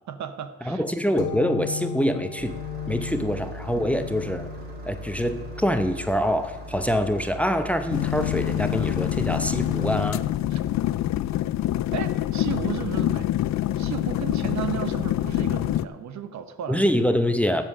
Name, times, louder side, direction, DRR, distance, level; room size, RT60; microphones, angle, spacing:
voice 1, 0.1-0.8 3.2-3.3 3.8-4.3 10.5-10.6 11.9-13.3 13.8-16.8, right 9 dB, 70° right, 9 dB, 1.1 m, -34 dB
voice 2, 0.6-2.6 2.9-4.5 4.8-10.2 16.7-17.6, equal, 5° left, 8 dB, 0.8 m, -25 dB
sound 1, 1.2-8.5, left 6 dB, 80° left, 1.4 m, -38 dB
Engine starting, 2.4-9.9, right 1 dB, 30° right, 2.9 m, -40 dB
sound 2, 7.9-15.8, left 13 dB, 65° left, 0.5 m, -26 dB
12.5 x 7.6 x 6.4 m, 1.1 s
cardioid pair, 90°, 30 cm